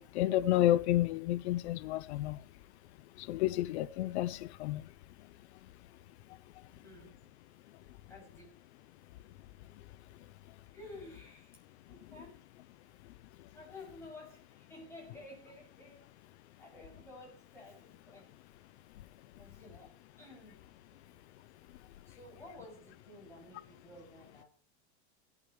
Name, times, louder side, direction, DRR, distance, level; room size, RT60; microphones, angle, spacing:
voice 1, 0.0-2.4 3.2-4.8, left 14 dB, 70° left, 0.6 m, -30 dB
voice 2, 6.8-7.1 8.1-8.6 10.1-10.3 10.7-11.6 11.9-12.4 13.5-16.1 16.6-18.3 19.4-20.6 22.1-24.5, left 2 dB, 10° left, 7.3 m, -52 dB
17.5 x 12.0 x 3.3 m
supercardioid pair, 175°, 34 cm